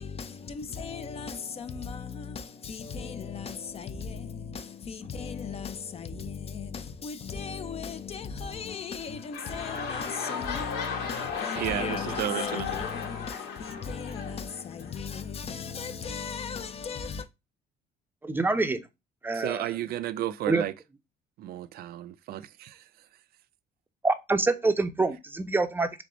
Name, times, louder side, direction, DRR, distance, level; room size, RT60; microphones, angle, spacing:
voice 1, 0.0-17.3, left 6 dB, 35° left, 0.6 m, -37 dB
sound 1, 8.9-15.2 15.9-16.0, left 6 dB, 80° left, 1.4 m, -35 dB
voice 2, 11.6-12.7 19.3-20.7 21.4-22.9, right 12 dB, 65° right, 0.4 m, -33 dB
voice 3, 18.2-18.8 19.2-19.6 20.5-20.6 24.0-26.0, right 3 dB, 10° right, 0.6 m, -26 dB
3.7 x 3.5 x 3.8 m
cardioid pair, 110°, 17 cm